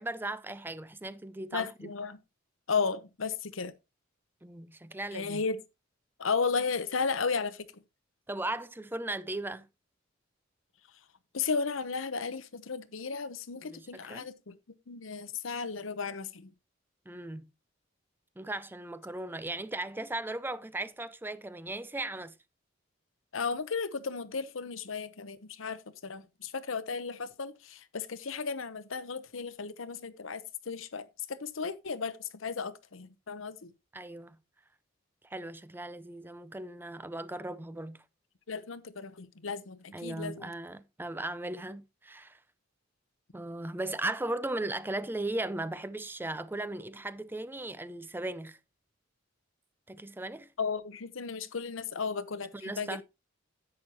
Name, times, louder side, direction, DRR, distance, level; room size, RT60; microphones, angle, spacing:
voice 1, 0.0-1.9 4.4-5.4 8.3-9.7 13.6-14.3 17.1-17.5 18.4-22.3 33.9-34.4 35.2-38.0 39.9-42.4 43.3-48.6 49.9-50.5 52.6-53.0, right 2 dB, 10° right, 0.5 m, -37 dB
voice 2, 1.5-2.2 2.7-3.7 5.1-5.6 6.2-7.8 11.3-16.5 23.3-33.7 38.5-40.5 50.6-53.0, left 5 dB, 80° left, 0.8 m, -34 dB
10.5 x 8.5 x 2.9 m
head